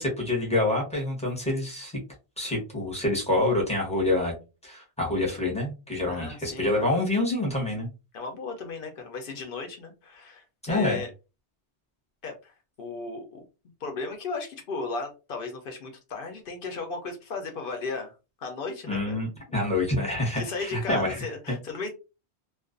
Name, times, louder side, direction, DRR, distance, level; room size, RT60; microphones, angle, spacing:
voice 1, 0.0-1.9 2.4-4.3 4.6-7.9 10.6-11.0 18.9-21.2, left 2 dB, 5° left, -2 dB, 0.8 m, -27 dB
voice 2, 6.1-6.9 8.1-11.1 12.2-13.4 13.8-18.1 18.4-19.2 20.1-21.9, left 4 dB, 60° left, 4 dB, 0.7 m, -36 dB
2.4 x 2.2 x 2.4 m, 0.29 s
omnidirectional pair, 1.2 m